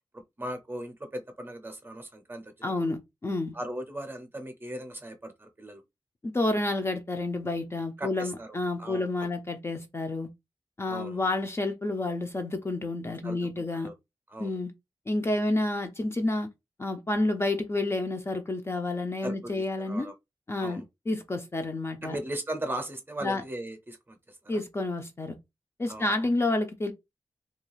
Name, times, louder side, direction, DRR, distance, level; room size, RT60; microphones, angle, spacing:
voice 1, 0.1-2.9 3.5-5.8 8.0-9.1 10.9-11.2 13.2-13.4 13.7-13.9 14.3-14.6 19.2-20.1 20.6-20.8 22.0-24.6 25.9-26.3, right 1 dB, 20° right, 0.6 m, -38 dB
voice 2, 2.6-3.6 6.2-10.3 10.8-13.9 14.4-14.7 15.1-16.5 16.8-20.1 20.5-22.2 23.2-23.4 24.5-25.4 25.8-26.9, left 2 dB, 25° left, 0.4 m, -29 dB
2.3 x 2.3 x 3.1 m
wide cardioid pair, 135°, 10 cm